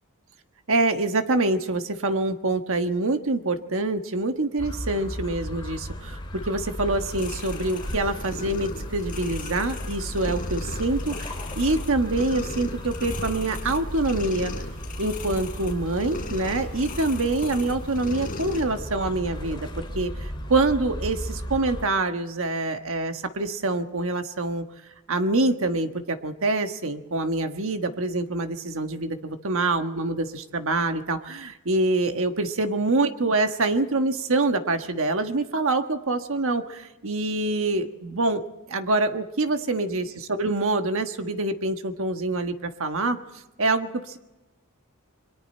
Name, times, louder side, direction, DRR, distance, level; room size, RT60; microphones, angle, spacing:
voice 1, 0.7-14.5 15.0-19.7 19.9-24.6 25.1-38.4 38.7-43.2 43.6-44.2, right 2 dB, 65° right, 7 dB, 1.4 m, -25 dB
sound 1, 4.6-21.8, equal, 20° left, 2.7 m, -35 dB
sound 2, 7.0-18.6, left 3 dB, 40° left, 4.0 m, -38 dB
28.0 x 22.5 x 4.4 m, 1.0 s
head